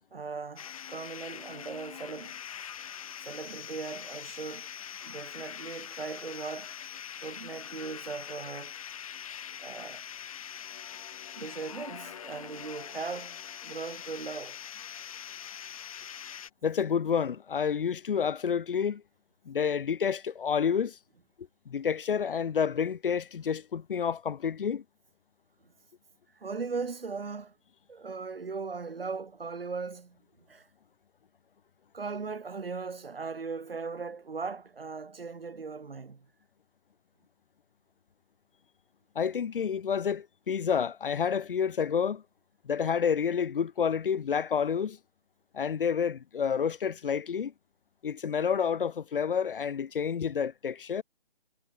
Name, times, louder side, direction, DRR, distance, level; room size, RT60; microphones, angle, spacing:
voice 1, 0.0-2.4 3.2-4.7 5.0-6.7 7.2-8.8 9.6-10.1 11.3-14.6 25.6-25.7 26.3-27.6 27.9-30.2 30.5-30.7 31.9-36.3, right 4 dB, 70° right, 2.1 m, -38 dB
sound 1, 0.6-16.5, left 9 dB, 35° left, 3.5 m, -43 dB
voice 2, 16.6-19.0 19.5-21.0 21.7-24.8 39.2-42.2 42.6-45.0 45.5-47.5 48.0-51.0, left 7 dB, 60° left, 0.5 m, -29 dB
figure-of-eight pair, 155°, 30 cm